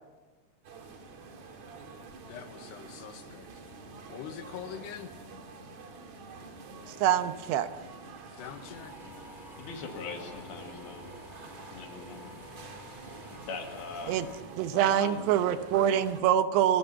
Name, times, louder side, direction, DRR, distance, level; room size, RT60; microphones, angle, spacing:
sound 1, 0.6-16.2, right 3 dB, 50° right, 2.8 m, -48 dB
voice 1, 2.3-3.5 4.1-5.1 8.3-8.9, left 9 dB, 85° left, 8 dB, 3.4 m, -43 dB
voice 2, 6.9-7.7 14.1-14.3 14.6-16.8, right 10 dB, 85° right, 10 dB, 3.1 m, -25 dB
sound 2, 8.4-14.4, left 2 dB, 15° left, 1.6 m, -49 dB
voice 3, 9.6-11.1 11.7-12.2 13.5-14.2 14.7-15.6, left 4 dB, 70° left, 3 dB, 4.1 m, -41 dB
28.5 x 19.0 x 5.6 m, 1.2 s
omnidirectional pair, 4.7 m